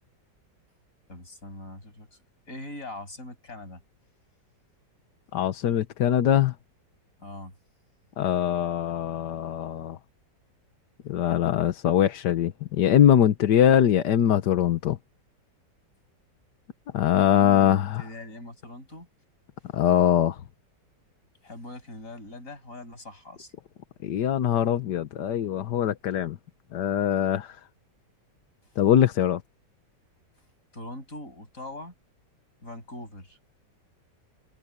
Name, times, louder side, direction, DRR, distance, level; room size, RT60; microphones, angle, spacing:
voice 1, 1.1-2.1 2.5-3.8 7.2-7.5 17.2-19.1 21.4-23.5 30.7-31.9 32.6-33.4, left 1 dB, 45° left, 8.5 m, -41 dB
voice 2, 5.3-6.5 8.2-10.0 11.1-15.0 16.9-18.0 19.7-20.4 24.0-26.4 26.7-27.6 28.8-29.4, left 10 dB, 75° left, 1.5 m, -22 dB
omnidirectional pair, 1.9 m